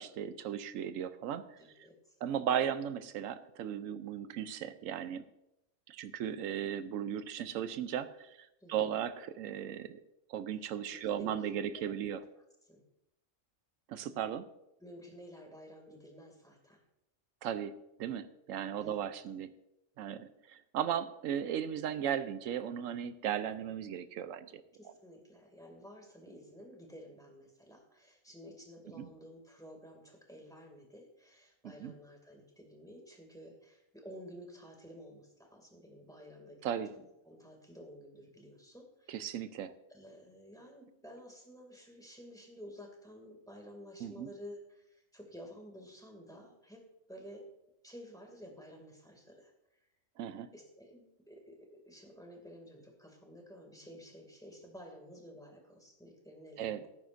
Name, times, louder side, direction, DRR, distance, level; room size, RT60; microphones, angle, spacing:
voice 1, 0.0-1.6 2.2-5.2 5.9-10.0 10.3-12.2 13.9-14.5 17.4-19.5 20.0-24.6 28.9-29.1 31.6-31.9 36.6-36.9 39.1-39.7 44.0-44.3 50.2-50.5 56.6-56.8, right 9 dB, 85° right, 12 dB, 1.0 m, -36 dB
voice 2, 1.6-2.2 8.6-9.0 10.9-11.5 12.7-12.8 14.8-16.8 18.8-18.9 24.8-36.6 37.2-39.4 39.9-46.8 47.1-47.5 47.8-49.5 50.5-56.9, equal, 5° left, 1 dB, 2.3 m, -52 dB
17.0 x 9.3 x 2.6 m, 0.86 s
omnidirectional pair, 1.3 m